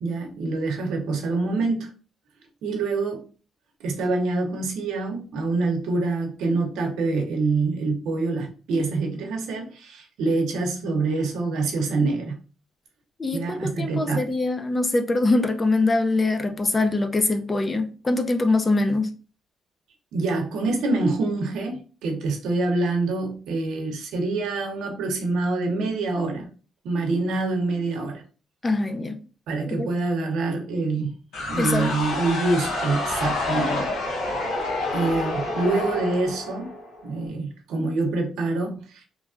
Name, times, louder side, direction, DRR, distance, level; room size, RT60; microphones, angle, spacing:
voice 1, 0.0-1.9 2.6-3.2 3.8-12.4 13.3-14.2 20.1-26.5 26.8-28.2 29.5-31.2 31.5-34.5 34.9-36.7 37.0-39.0, right 3 dB, 85° right, 0.8 m, -26 dB
voice 2, 13.2-19.1 28.6-29.2 29.7-29.9 31.6-32.0, left 2 dB, 25° left, 0.5 m, -23 dB
sound 1, 31.3-37.1, left 2 dB, 80° left, 1.0 m, -28 dB
3.1 x 2.3 x 2.5 m
cardioid pair, 90°, 0 cm